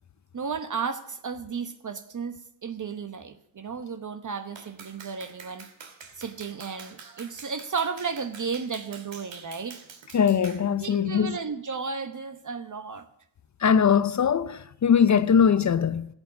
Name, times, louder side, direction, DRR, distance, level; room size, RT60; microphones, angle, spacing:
voice 1, 0.3-2.3 2.6-5.6 6.2-9.8 10.8-13.0, right 5 dB, 40° right, 1.0 m, -33 dB
Clapping, 4.6-10.7, right 5 dB, 65° right, 2.6 m, -46 dB
voice 2, 10.1-11.4 13.6-16.1, left 7 dB, 40° left, 0.5 m, -21 dB
14.5 x 8.2 x 8.3 m
wide cardioid pair, 145°, 47 cm